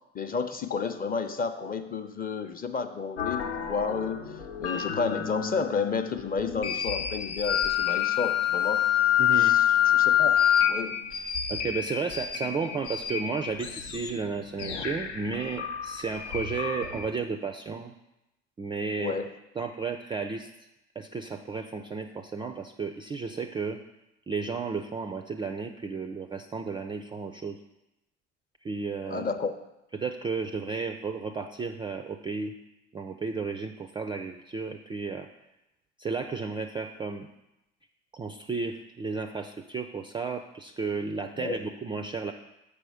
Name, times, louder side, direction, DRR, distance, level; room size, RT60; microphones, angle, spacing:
voice 1, 0.1-4.2 4.6-8.9 9.4-10.4 10.7-10.9 19.0-19.3 29.1-29.5 41.4-41.6, left 5 dB, 25° left, 8 dB, 0.6 m, -31 dB
sound 1, 3.2-17.1, left 5 dB, 80° left, 0.8 m, -36 dB
Wind instrument woodwind instrument, 7.5-10.8, left 11 dB, 50° left, 0.9 m, -22 dB
voice 2, 9.2-9.6 11.5-17.9 18.6-19.2 19.6-20.5 21.0-23.8 24.3-27.6 28.6-29.3 29.9-32.6 32.9-35.3 36.0-37.3 38.1-42.3, right 4 dB, 15° right, 7 dB, 0.3 m, -33 dB
6.8 x 5.0 x 4.8 m, 0.92 s
hypercardioid pair, 70°, 35 cm